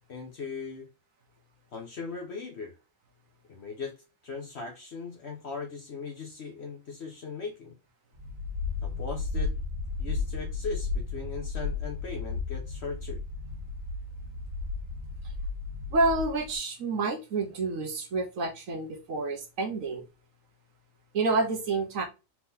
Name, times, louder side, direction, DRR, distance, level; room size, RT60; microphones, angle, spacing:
voice 1, 0.1-0.9 1.7-2.8 3.5-7.8 8.8-9.5 10.0-13.2, left 4 dB, 55° left, 1.1 m, -39 dB
sound 1, 8.1-16.6, left 4 dB, 60° right, 2.2 m, -34 dB
voice 2, 15.9-20.1 21.1-22.0, right 3 dB, 80° right, 1.3 m, -28 dB
4.4 x 3.7 x 2.7 m
omnidirectional pair, 1.4 m